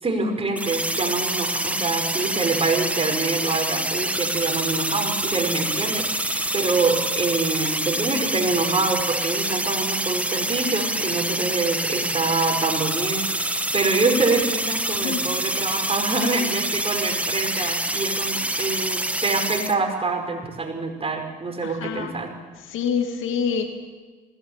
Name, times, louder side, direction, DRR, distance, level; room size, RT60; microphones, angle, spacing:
voice 1, 0.0-22.3, right 3 dB, 30° right, 3 dB, 5.3 m, -26 dB
sound 1, 0.5-19.7, right 1 dB, 5° right, 1.3 m, -26 dB
voice 2, 21.6-22.1 22.7-23.7, left 7 dB, 75° left, 5 dB, 2.2 m, -27 dB
20.0 x 17.5 x 8.9 m, 1.3 s
supercardioid pair, 70°, 21 cm